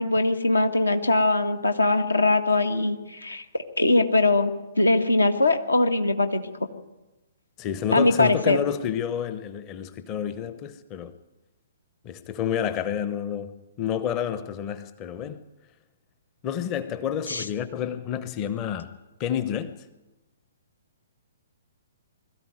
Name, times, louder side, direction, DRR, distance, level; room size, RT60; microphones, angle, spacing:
voice 1, 0.0-6.5 7.9-8.6 17.3-17.4, left 2 dB, 75° left, 1.8 m, -22 dB
voice 2, 7.6-11.2 12.0-15.4 16.4-19.8, left 9 dB, 25° left, 0.9 m, -29 dB
21.5 x 14.0 x 9.4 m
figure-of-eight pair, 120°, 0 cm